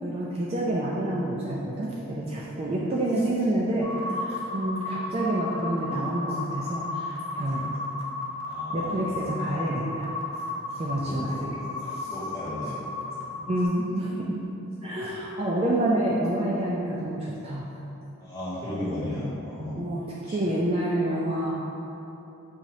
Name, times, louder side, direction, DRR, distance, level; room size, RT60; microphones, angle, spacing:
voice 1, 0.0-7.7 8.7-10.1 10.8-11.5 11.8-12.1 13.5-14.4 14.8-17.7 19.8-21.6, right 1 dB, 25° right, -5 dB, 0.3 m, -28 dB
sound 1, 3.8-13.7, left 2 dB, 65° right, 0.7 m, -34 dB
voice 2, 8.4-8.9 11.0-11.6 12.1-12.8 13.3-13.5 18.2-19.8 20.3-20.4, left 1 dB, 15° left, -12 dB, 1.5 m, -35 dB
6.2 x 2.7 x 3.0 m, 3.0 s
head